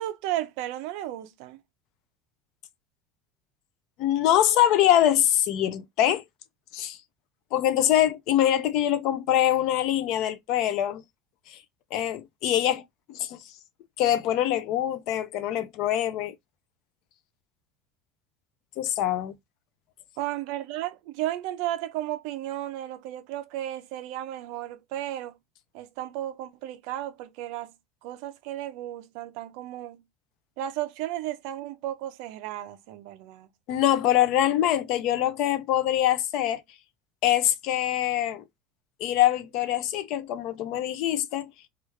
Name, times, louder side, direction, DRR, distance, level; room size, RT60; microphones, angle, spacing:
voice 1, 0.0-1.6 20.2-25.4 25.7-27.7 28.0-30.0 30.6-33.5, right 13 dB, 60° right, 0.5 m, -34 dB
voice 2, 4.0-6.2 6.7-7.0 7.5-11.0 11.9-12.8 13.1-13.4 14.0-16.3 18.8-19.3 33.7-36.6 37.2-38.4 39.0-41.5, left 12 dB, 50° left, 0.4 m, -24 dB
3.0 x 2.4 x 3.1 m
cardioid pair, 170°, 0 cm